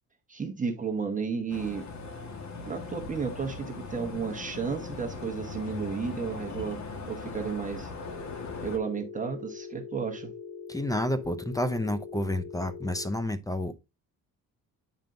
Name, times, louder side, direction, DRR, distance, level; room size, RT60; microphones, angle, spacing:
voice 1, 0.3-1.9 2.7-7.9 8.6-10.3, right 5 dB, 20° right, 1.0 m, -33 dB
sound 1, 1.5-8.8, left 4 dB, 50° left, 1.4 m, -39 dB
Telephone, 8.0-13.0, left 6 dB, 75° left, 1.4 m, -42 dB
voice 2, 10.7-13.8, left 1 dB, 10° left, 0.5 m, -30 dB
9.0 x 5.3 x 2.5 m
cardioid pair, 125°, 35 cm